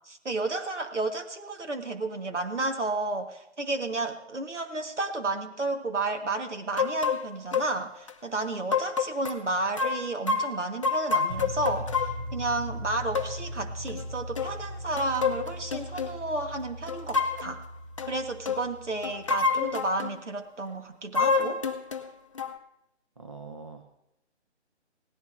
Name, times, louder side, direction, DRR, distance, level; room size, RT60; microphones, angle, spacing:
voice 1, 0.1-12.0 12.3-17.6 18.0-21.6, right 2 dB, 85° right, 5 dB, 1.6 m, -32 dB
sound 1, 6.8-7.2 7.5-7.7 8.1-8.2 8.7-9.4 9.8-12.2 13.1-13.3 13.9-14.0 14.3-14.5 14.9-16.1 16.9-17.5 18.0-18.1 18.4-18.6 19.0-20.1 21.1-22.1 22.4-22.5, left 5 dB, 30° left, 0.6 m, -28 dB
sound 2, 11.3-19.4, equal, 60° right, 3.4 m, -39 dB
voice 2, 23.2-23.8, right 4 dB, 25° right, 5 dB, 0.6 m, -43 dB
18.0 x 14.0 x 2.6 m, 0.83 s
figure-of-eight pair, 150°, 35 cm